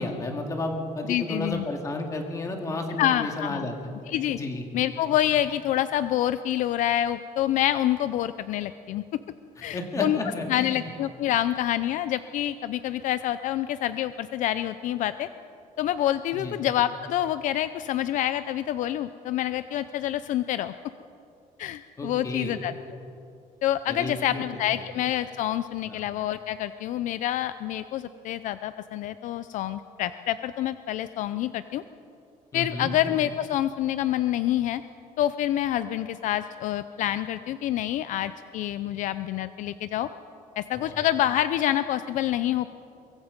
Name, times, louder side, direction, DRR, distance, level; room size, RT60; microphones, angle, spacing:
voice 1, 0.0-3.9 4.3-4.6 9.6-10.8 16.3-16.6 22.0-22.5 23.9-24.4 25.9-26.0 32.5-32.9 40.7-41.0, left 2 dB, 20° left, 3 dB, 2.3 m, -32 dB
voice 2, 1.1-1.7 3.0-3.7 4.1-4.4 4.7-9.0 9.6-10.2 10.5-15.3 15.8-20.7 21.6-22.7 23.6-31.8 32.5-34.8 35.2-40.1 40.6-42.7, left 12 dB, 60° left, 12 dB, 0.5 m, -27 dB
24.0 x 22.5 x 5.2 m, 2.6 s
cardioid pair, 175°, 14 cm